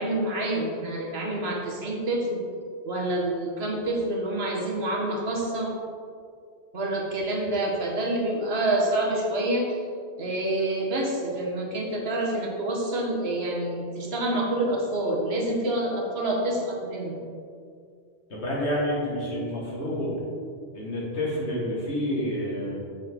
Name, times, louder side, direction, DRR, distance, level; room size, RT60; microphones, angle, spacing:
voice 1, 0.0-2.4 2.8-5.7 6.7-9.8 10.2-17.2, right 1 dB, 70° right, -2 dB, 1.4 m, -27 dB
voice 2, 18.3-20.1 20.7-22.8, equal, 85° left, -4 dB, 1.9 m, -29 dB
6.3 x 6.2 x 3.6 m, 2.3 s
omnidirectional pair, 1.1 m